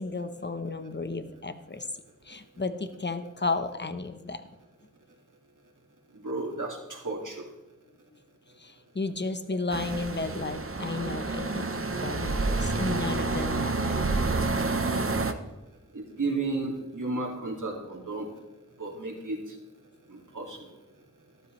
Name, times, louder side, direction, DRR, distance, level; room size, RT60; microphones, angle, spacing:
voice 1, 0.0-1.9 2.2-4.4 8.6-14.0 20.5-20.6, left 3 dB, 35° left, 10 dB, 0.9 m, -33 dB
voice 2, 6.1-7.4 15.9-18.3 18.8-19.4 20.1-20.6, right 3 dB, 80° right, -1 dB, 2.4 m, -33 dB
sound 1, 9.7-15.3, right 3 dB, 45° right, 0.9 m, -29 dB
13.0 x 12.5 x 3.2 m, 1.1 s
wide cardioid pair, 50°, 31 cm